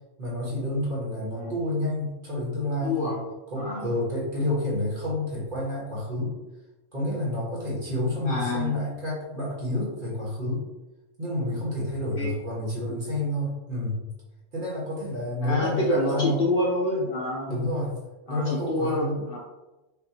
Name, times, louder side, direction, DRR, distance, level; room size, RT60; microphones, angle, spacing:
voice 1, 0.2-3.1 3.5-6.3 6.9-10.6 11.2-14.0 14.5-16.4 17.5-17.9 18.3-19.2, left 1 dB, 45° right, -6 dB, 1.5 m, -29 dB
voice 2, 2.8-3.2 3.6-3.9 8.2-8.9 12.1-12.3 15.4-17.5 18.3-19.4, left 1 dB, 55° left, -3 dB, 0.8 m, -27 dB
5.6 x 2.6 x 2.8 m, 1.0 s
omnidirectional pair, 1.3 m